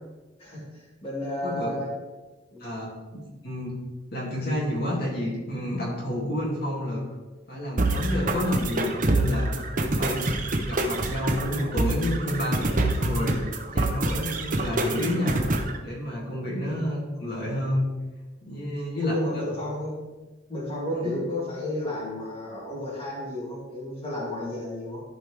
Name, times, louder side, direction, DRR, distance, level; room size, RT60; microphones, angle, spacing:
voice 1, 0.4-1.9 2.5-2.7 18.5-18.7 19.0-20.0 20.5-25.0, left 1 dB, 30° left, -6 dB, 2.5 m, -32 dB
voice 2, 2.6-2.9 3.4-3.7 4.1-7.0 7.5-9.5 9.8-10.2 10.6-15.5 15.8-17.8 18.4-19.1 19.5-19.6 20.9-21.2, left 1 dB, 50° left, -5 dB, 2.6 m, -29 dB
sound 1, 7.8-15.8, right 2 dB, 40° right, 0.8 m, -26 dB
14.0 x 5.0 x 3.4 m, 1.2 s
head